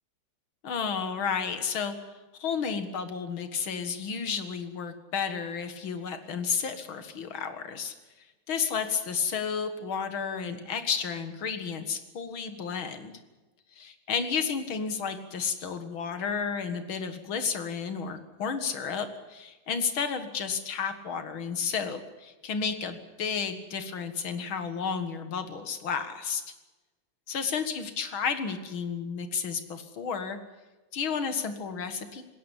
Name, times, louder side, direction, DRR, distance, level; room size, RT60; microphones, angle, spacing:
voice 1, 0.6-7.9 8.5-13.1 13.8-26.4 27.3-30.4 30.9-32.2, left 6 dB, 85° left, 9 dB, 2.6 m, -32 dB
20.0 x 17.5 x 10.0 m, 1.2 s
omnidirectional pair, 2.2 m